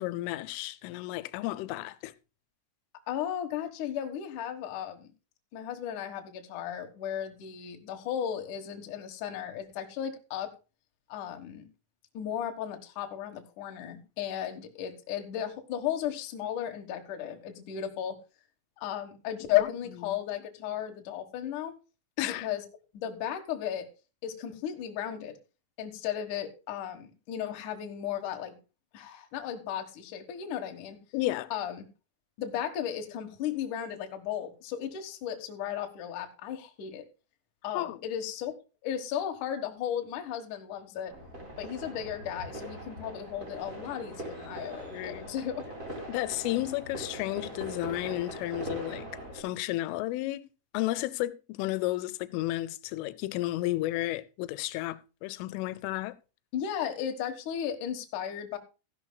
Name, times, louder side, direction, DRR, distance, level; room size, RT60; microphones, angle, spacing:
voice 1, 0.0-2.1 19.6-19.7 20.1-20.2 22.2-22.5 31.1-31.5 37.7-38.0 44.9-45.3 46.1-50.4 50.7-56.2, left 17 dB, 90° left, 3.2 m, -33 dB
voice 2, 3.1-5.1 5.5-10.5 11.1-11.7 12.1-18.2 18.8-21.7 22.2-22.6 22.9-23.9 24.2-25.4 25.8-28.6 28.9-31.0 31.5-31.8 32.4-37.0 37.6-38.5 38.8-41.1 41.6-45.6 56.5-58.6, left 10 dB, 60° left, 2.1 m, -35 dB
sound 1, 41.1-49.4, right 1 dB, 20° right, 3.6 m, -41 dB
15.5 x 11.0 x 2.3 m
omnidirectional pair, 5.5 m